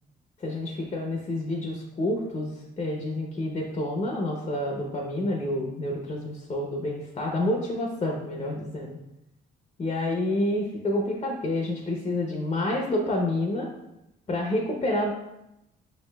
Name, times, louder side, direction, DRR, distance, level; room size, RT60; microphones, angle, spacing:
voice 1, 0.4-9.0 9.8-13.7 14.3-15.1, left 1 dB, 30° left, 0 dB, 0.7 m, -28 dB
5.5 x 3.1 x 2.3 m, 0.88 s
cardioid pair, 90°, 20 cm